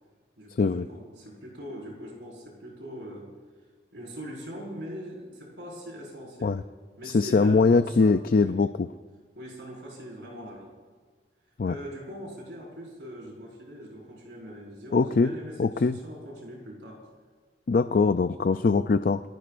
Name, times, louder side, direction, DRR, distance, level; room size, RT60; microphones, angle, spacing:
voice 1, 0.4-3.3 3.9-6.6 7.0-8.6 9.4-10.7 11.6-17.0, equal, 80° right, -2 dB, 5.2 m, -41 dB
voice 2, 7.0-8.9 11.6-11.7 14.9-15.3 15.6-16.0 17.7-19.2, left 4 dB, 50° left, 10 dB, 0.4 m, -22 dB
28.5 x 18.5 x 2.6 m, 1.5 s
head